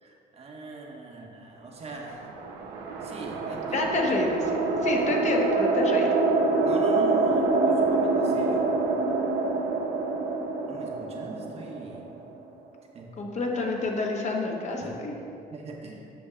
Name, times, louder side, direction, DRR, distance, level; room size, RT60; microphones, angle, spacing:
voice 1, 0.0-2.3 3.0-3.9 5.0-5.3 6.6-8.7 10.7-12.2 12.9-13.2 14.8-14.9 15.5-16.0, right 3 dB, 40° right, 0 dB, 1.0 m, -41 dB
sound 1, 2.0-12.4, right 3 dB, 85° right, 0.9 m, -26 dB
voice 2, 3.7-4.5 4.8-6.2 13.2-15.2, left 2 dB, 45° left, 0 dB, 1.0 m, -28 dB
7.9 x 5.5 x 3.6 m, 2.7 s
cardioid pair, 110°, 17 cm